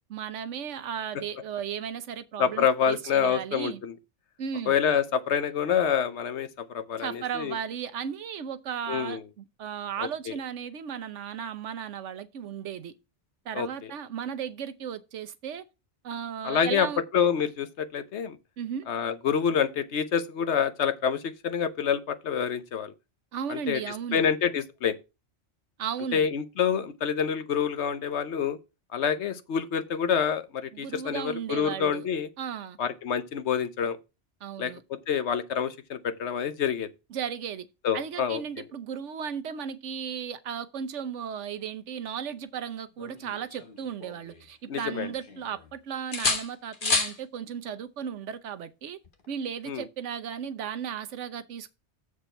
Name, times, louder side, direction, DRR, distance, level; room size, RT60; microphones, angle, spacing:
voice 1, 0.1-3.8 4.4-4.8 7.0-12.9 13.4-15.7 16.0-17.0 18.6-18.8 23.3-24.3 25.8-26.3 30.7-32.1 32.4-32.8 34.4-34.8 37.1-37.7 37.9-49.0 49.3-51.8, right 8 dB, 90° right, 1.1 m, -35 dB
voice 2, 2.4-3.9 4.7-7.5 8.9-9.2 13.5-13.7 16.4-16.9 17.1-18.4 18.9-22.9 23.5-23.8 24.1-25.0 26.1-28.6 28.9-32.3 32.8-34.0 34.6-36.9 37.8-38.4 44.7-45.1 49.7-49.8, left 7 dB, 70° left, 1.1 m, -27 dB
sound 1, 43.0-44.5 44.9-45.7 46.1-47.2 49.0-49.3, left 3 dB, 45° left, 1.4 m, -31 dB
7.3 x 6.6 x 4.4 m
omnidirectional pair, 1.2 m